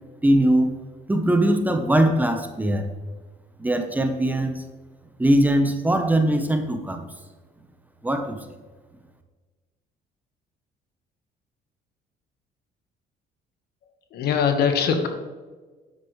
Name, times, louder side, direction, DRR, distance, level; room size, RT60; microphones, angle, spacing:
voice 1, 0.2-0.7 1.1-2.9 3.6-4.6 5.2-7.1 8.0-8.4, right 1 dB, 10° right, 6 dB, 0.9 m, -21 dB
voice 2, 14.1-15.1, left 7 dB, 70° left, 6 dB, 1.3 m, -21 dB
9.6 x 8.1 x 3.2 m, 1.3 s
cardioid pair, 110°, 17 cm